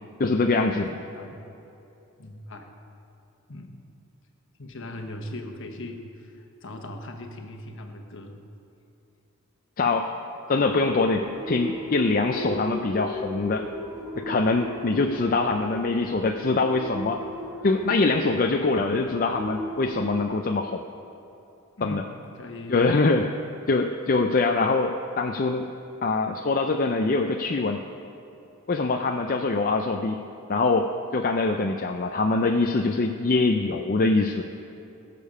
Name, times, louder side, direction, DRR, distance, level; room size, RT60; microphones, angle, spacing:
voice 1, 0.2-0.9 9.8-10.1 10.5-13.7 14.2-17.2 17.6-20.8 21.8-22.0 22.7-23.3 23.7-25.7 26.0-27.8 28.7-30.2 30.5-34.4, left 3 dB, 40° left, 4 dB, 0.5 m, -24 dB
voice 2, 0.8-1.4 2.2-2.7 3.5-3.8 4.6-8.4 21.8-22.1 22.3-22.8, left 1 dB, 60° left, 4 dB, 1.2 m, -39 dB
sound 1, 10.7-20.2, equal, ahead, 1.4 m, -36 dB
19.5 x 6.8 x 5.5 m, 2.8 s
head